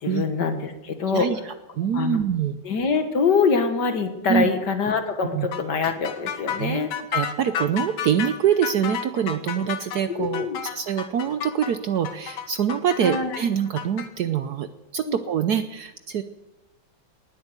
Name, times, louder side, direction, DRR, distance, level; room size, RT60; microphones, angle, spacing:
voice 1, 0.0-1.3 1.9-2.2 2.6-6.9 10.2-10.6 13.0-13.4 15.0-15.2, left 5 dB, 60° left, 7 dB, 2.0 m, -24 dB
voice 2, 1.1-2.6 4.3-4.5 5.3-5.5 6.6-6.8 7.1-10.4 10.7-16.2, right 8 dB, 65° right, 10 dB, 1.0 m, -25 dB
sound 1, 5.5-14.1, left 8 dB, 90° left, 1.9 m, -31 dB
19.5 x 8.2 x 8.1 m, 1.0 s
omnidirectional pair, 2.2 m